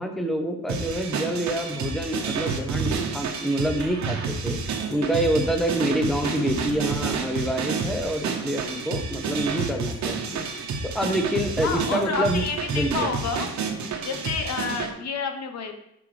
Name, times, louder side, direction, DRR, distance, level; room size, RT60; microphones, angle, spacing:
voice 1, 0.0-12.4 12.7-13.1, right 1 dB, ahead, 4 dB, 0.8 m, -27 dB
sound 1, 0.7-14.9, right 5 dB, 70° right, 1.1 m, -29 dB
voice 2, 6.2-6.7 11.6-13.5 14.0-15.7, left 5 dB, 60° left, 6 dB, 1.0 m, -30 dB
7.8 x 5.0 x 3.2 m, 0.80 s
cardioid pair, 90°, 30 cm